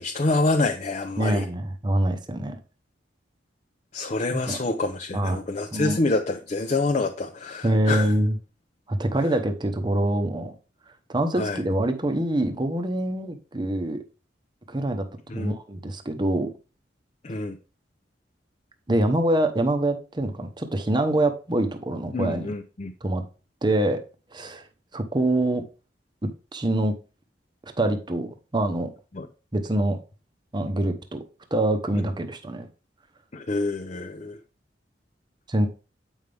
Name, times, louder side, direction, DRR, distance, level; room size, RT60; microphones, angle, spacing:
voice 1, 0.0-1.5 3.9-8.1 11.4-11.6 15.3-15.6 17.2-17.6 22.1-22.9 29.1-29.3 33.3-34.4, left 2 dB, 40° left, 0.6 m, -27 dB
voice 2, 1.2-2.6 4.3-4.6 5.1-5.4 5.7-6.0 7.6-8.4 8.9-10.5 11.1-14.0 14.7-15.0 15.3-16.5 18.9-22.5 23.0-23.2 23.6-24.0 24.3-24.6 24.9-25.6 26.5-26.9 27.8-28.9 29.5-30.0 30.5-31.2 31.5-32.7 35.5-35.7, right 1 dB, 25° right, 0.8 m, -25 dB
8.0 x 5.4 x 3.4 m
head